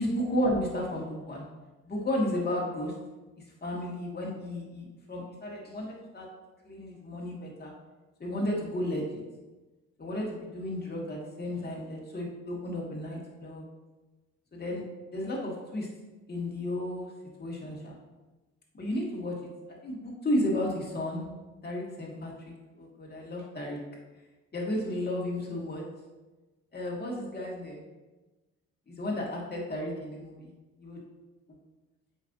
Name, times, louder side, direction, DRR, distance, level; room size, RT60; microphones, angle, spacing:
voice 1, 0.0-1.4 1.8-2.9 3.6-6.3 6.7-7.7 8.2-9.2 10.0-13.7 14.5-14.8 15.1-15.9 16.3-17.1 17.4-18.0 18.7-19.3 19.8-21.2 21.6-23.8 24.5-25.8 26.7-27.8 28.9-30.5 30.8-31.0 31.5-31.6, left 1 dB, 35° left, -3 dB, 2.0 m, -33 dB
7.8 x 5.6 x 2.7 m, 1.2 s
cardioid pair, 90°, 30 cm